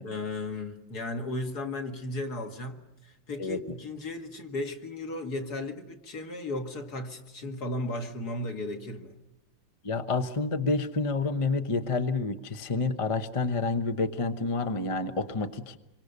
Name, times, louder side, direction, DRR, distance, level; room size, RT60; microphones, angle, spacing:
voice 1, 0.0-9.2, left 2 dB, 50° left, 2.4 m, -35 dB
voice 2, 9.8-15.8, left 3 dB, 25° left, 0.7 m, -29 dB
27.0 x 24.0 x 6.8 m
omnidirectional pair, 2.2 m